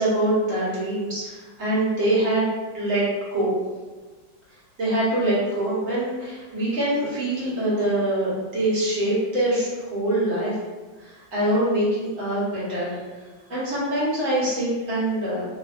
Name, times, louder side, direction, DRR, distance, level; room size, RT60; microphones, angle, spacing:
voice 1, 0.0-3.0 3.3-3.5 4.8-10.5 11.0-13.0 13.5-15.4, right 1 dB, 50° right, -9 dB, 1.4 m, -24 dB
3.3 x 2.6 x 2.4 m, 1.3 s
omnidirectional pair, 2.0 m